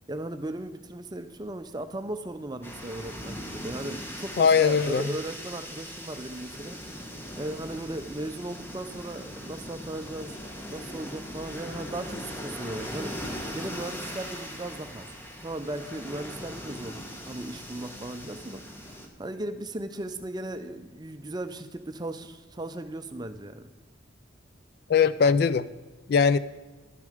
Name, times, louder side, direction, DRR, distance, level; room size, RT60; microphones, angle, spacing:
voice 1, 0.1-6.8 7.4-10.4 10.7-13.1 13.5-15.0 15.4-18.6 18.9-23.7, right 1 dB, 20° right, 9 dB, 0.5 m, -37 dB
sound 1, 2.6-19.1, equal, 10° left, 1.1 m, -40 dB
voice 2, 4.4-5.0 24.9-25.7 26.1-26.4, left 6 dB, 55° left, 15 dB, 0.3 m, -20 dB
12.0 x 6.8 x 5.0 m, 1.3 s
head